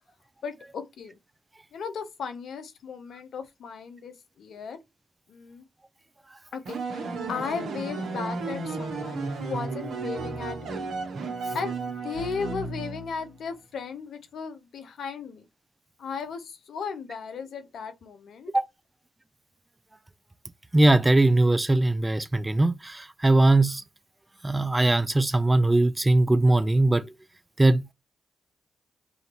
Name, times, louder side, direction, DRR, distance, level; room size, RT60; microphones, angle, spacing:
voice 1, 0.4-1.2 1.7-4.8 5.3-5.6 6.5-10.9 11.5-15.4 16.0-18.5, left 5 dB, 70° left, 0.8 m, -36 dB
sound 1, 6.7-13.3, right 3 dB, 75° right, 1.1 m, -33 dB
voice 2, 20.7-23.8 24.4-27.1 27.6-27.9, right 2 dB, 20° right, 0.5 m, -20 dB
4.9 x 2.5 x 3.0 m
supercardioid pair, 50°, 0 cm